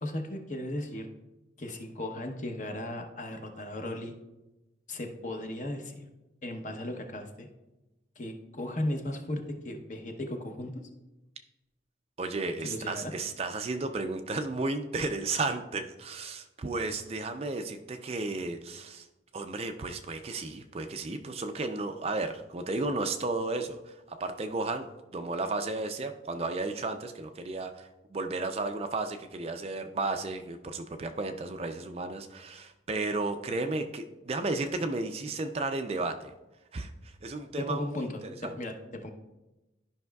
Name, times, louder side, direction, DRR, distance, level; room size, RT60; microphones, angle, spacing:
voice 1, 0.0-1.1 1.6-4.1 4.9-6.1 6.4-7.5 8.2-10.8 12.6-13.1 37.6-38.2 38.6-39.1, left 1 dB, 40° left, 5 dB, 0.8 m, -36 dB
voice 2, 12.2-19.1 19.3-24.9 25.1-36.3 36.7-36.9 37.2-37.8 38.2-38.5, right 3 dB, 30° right, 7 dB, 0.4 m, -33 dB
12.0 x 5.5 x 2.3 m, 1.0 s
head